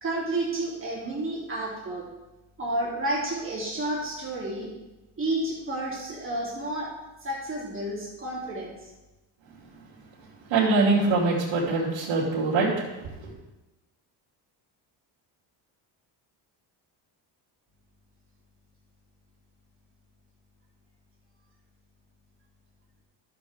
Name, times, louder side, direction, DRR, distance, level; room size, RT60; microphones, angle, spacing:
voice 1, 0.0-2.0 2.6-4.7 5.2-6.9 7.2-8.9, right 1 dB, 25° right, -6 dB, 3.0 m, -31 dB
voice 2, 10.5-12.7, right 3 dB, 75° right, -8 dB, 2.7 m, -23 dB
12.0 x 7.4 x 3.6 m, 1.0 s
cardioid pair, 120°, 46 cm